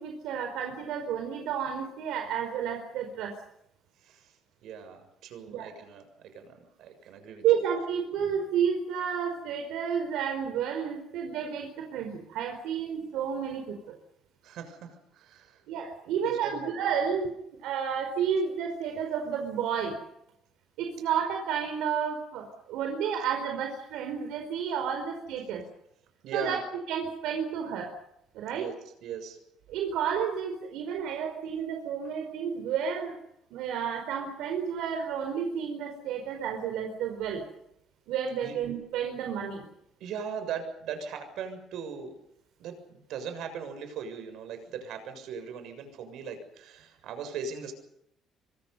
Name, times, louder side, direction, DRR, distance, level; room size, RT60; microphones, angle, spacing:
voice 1, 0.0-3.4 5.5-5.7 7.4-14.0 15.7-17.3 17.6-20.0 20.8-25.6 26.3-26.6 26.9-27.9 28.3-28.7 29.7-33.2 33.5-37.4 38.1-39.7, right 7 dB, 80° right, 4 dB, 4.7 m, -31 dB
voice 2, 4.0-7.5 14.4-15.6 16.1-17.2 26.2-26.6 28.5-29.4 38.4-38.6 40.0-42.2 42.6-47.7, right 6 dB, 60° right, 8 dB, 6.9 m, -39 dB
26.5 x 25.5 x 5.6 m, 0.77 s
cardioid pair, 170°, 0 cm